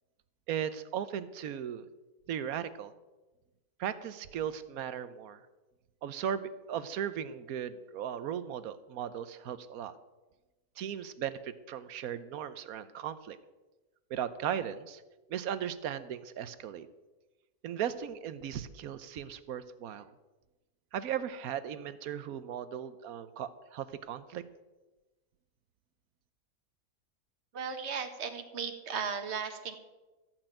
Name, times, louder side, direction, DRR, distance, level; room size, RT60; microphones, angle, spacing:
voice 1, 0.5-1.9 2.3-2.9 3.8-5.4 6.0-9.9 10.8-13.4 14.1-15.0 15.3-16.9 17.6-20.1 20.9-24.4, right 9 dB, 70° right, 13 dB, 1.2 m, -37 dB
voice 2, 27.5-29.8, right 6 dB, 50° right, 6 dB, 1.5 m, -36 dB
14.0 x 6.1 x 8.9 m, 1.1 s
omnidirectional pair, 1.6 m